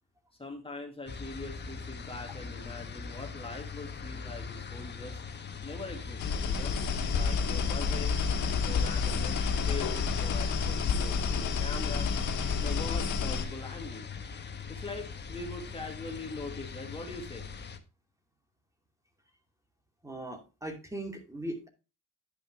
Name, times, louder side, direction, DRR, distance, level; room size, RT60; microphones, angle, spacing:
voice 1, 0.4-5.2 5.6-6.7 7.1-8.2 8.6-12.1 12.6-14.1 14.7-17.5, left 2 dB, 20° left, 1 dB, 2.0 m, -42 dB
sound 1, 1.1-17.8, left 5 dB, 35° left, 1.3 m, -41 dB
sound 2, 6.2-13.4, left 5 dB, 80° left, 1.7 m, -30 dB
voice 2, 20.0-21.7, right 1 dB, 10° right, 3 dB, 2.6 m, -39 dB
11.0 x 5.3 x 4.6 m, 0.30 s
cardioid pair, 90°, 30 cm